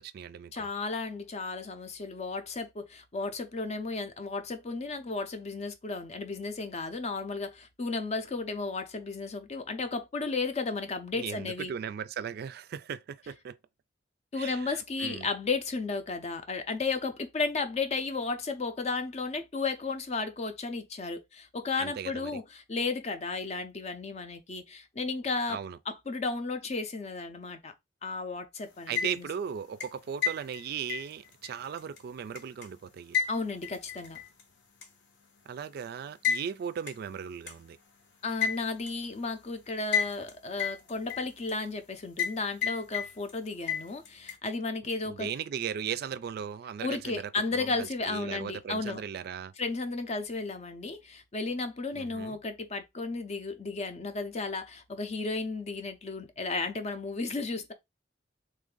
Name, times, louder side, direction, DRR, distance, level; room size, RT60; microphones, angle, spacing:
voice 1, 0.0-0.7 11.1-13.6 14.4-15.3 21.8-22.4 25.5-25.8 28.9-33.2 35.5-37.8 45.1-49.5 51.9-52.4, right 8 dB, 60° right, 0.3 m, -37 dB
voice 2, 0.5-11.7 14.3-25.6 25.9-27.7 28.0-29.3 33.3-34.2 38.2-45.3 46.8-49.0 49.6-57.7, left 3 dB, 40° left, 0.5 m, -34 dB
sound 1, 28.7-29.4 29.8-32.7 33.1-34.4 34.8-34.9 36.2-36.5 36.9-37.0 37.5-37.6 38.4-38.9 39.9-40.3 40.6-41.5 42.2-42.4 42.6-43.3 43.7-44.4, left 7 dB, 70° left, 0.9 m, -31 dB
3.3 x 2.5 x 3.7 m
head